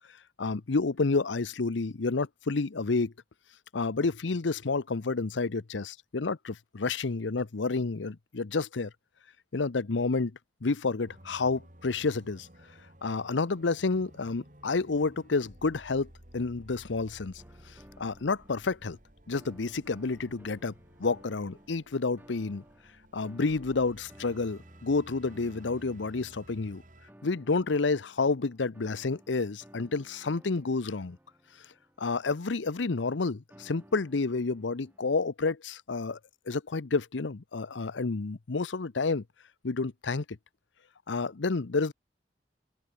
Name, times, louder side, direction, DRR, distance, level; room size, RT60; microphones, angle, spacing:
voice 1, 0.4-3.1 3.7-8.9 9.5-10.3 10.6-12.5 13.0-16.1 16.3-17.3 18.0-19.0 19.3-20.7 21.0-22.6 23.1-26.8 27.2-31.2 32.0-36.2 36.5-39.2 39.6-40.4 41.1-41.9, left 3 dB, 85° left, 0.8 m, -29 dB
sound 1, 11.1-27.1, right 1 dB, 45° right, 5.4 m, -55 dB
sound 2, 17.4-19.0 19.3-21.7 22.2-32.2 33.5-35.3, equal, 10° right, 4.6 m, -57 dB
head